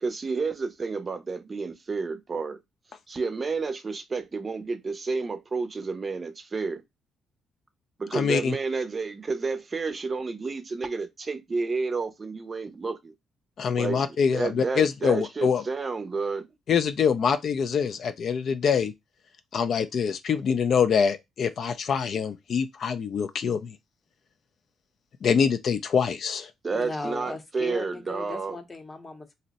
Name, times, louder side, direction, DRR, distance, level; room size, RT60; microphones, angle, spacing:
voice 1, 0.0-2.6 3.1-6.8 8.0-13.1 13.8-14.1 14.3-16.5 26.6-28.6, right 4 dB, 35° right, 0.5 m, -30 dB
voice 2, 8.1-8.6 13.6-15.6 16.7-18.9 19.5-23.7 25.2-26.5, left 6 dB, 60° left, 0.3 m, -25 dB
voice 3, 26.7-29.3, left 2 dB, 25° left, 0.7 m, -37 dB
2.6 x 2.0 x 3.9 m
cardioid pair, 90°, 0 cm